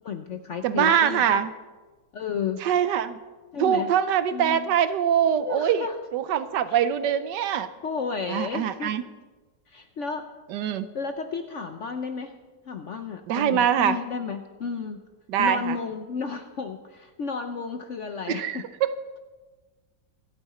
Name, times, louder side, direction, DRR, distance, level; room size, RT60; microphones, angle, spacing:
voice 1, 0.0-1.4 2.1-2.7 3.5-3.9 4.3-4.7 5.4-6.0 6.7-6.8 7.8-8.9 9.7-10.3 10.9-12.3 12.7-15.0 15.4-18.6, left 5 dB, 60° left, 7 dB, 0.8 m, -32 dB
voice 2, 0.6-1.5 2.6-3.2 3.6-5.9 6.1-7.7 8.3-9.0 10.5-10.8 13.3-14.0 15.3-15.8 18.3-18.9, right 9 dB, 75° right, 13 dB, 1.3 m, -23 dB
25.5 x 8.6 x 4.2 m, 1.3 s
omnidirectional pair, 2.0 m